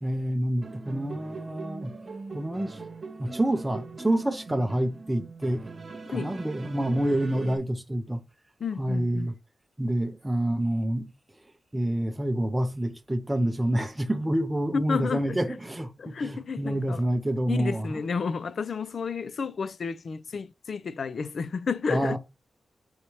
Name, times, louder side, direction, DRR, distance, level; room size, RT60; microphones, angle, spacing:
voice 1, 0.0-1.9 2.3-2.8 3.2-5.7 6.1-8.2 8.8-9.3 9.8-11.1 11.7-18.0 21.9-22.2, right 1 dB, 10° right, 0.6 m, -27 dB
sound 1, 0.6-7.6, right 3 dB, 40° right, 1.1 m, -41 dB
voice 2, 8.6-9.3 14.7-15.6 16.0-17.1 17.5-22.2, left 5 dB, 55° left, 0.3 m, -31 dB
5.5 x 2.8 x 3.0 m
wide cardioid pair, 160°, 0 cm